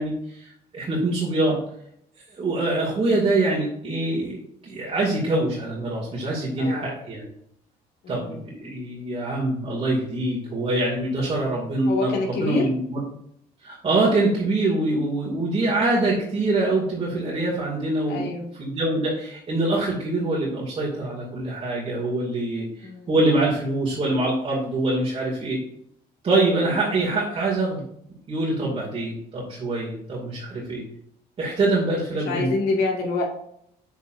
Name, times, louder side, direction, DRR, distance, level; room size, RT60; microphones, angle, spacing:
voice 1, 0.0-1.6 2.4-4.4 4.6-7.2 8.1-13.0 13.6-18.3 18.6-25.6 26.2-27.8 28.3-30.8 31.4-32.5, right 2 dB, 35° right, -5 dB, 2.3 m, -24 dB
voice 2, 6.6-6.9 8.0-8.4 11.9-12.7 18.1-18.5 22.8-23.2 28.6-28.8 32.1-33.2, left 3 dB, 75° left, 0 dB, 2.1 m, -27 dB
8.1 x 6.9 x 2.6 m, 0.72 s
cardioid pair, 110°, 17 cm